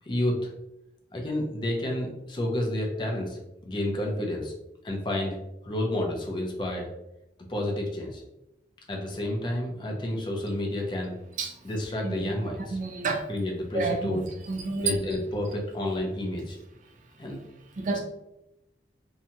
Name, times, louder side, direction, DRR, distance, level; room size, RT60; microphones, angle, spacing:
voice 1, 0.1-0.5 1.1-4.5 4.8-5.4 5.6-6.9 7.5-8.2 8.9-11.1 11.6-12.8 13.3-14.3 14.8-16.6 17.2-17.4 17.9-18.0, left 1 dB, 25° left, 1 dB, 0.4 m, -30 dB
voice 2, 12.7-13.2 13.7-15.0 17.8-18.0, right 3 dB, 45° right, 2 dB, 0.3 m, -29 dB
2.7 x 2.2 x 2.7 m, 0.89 s
head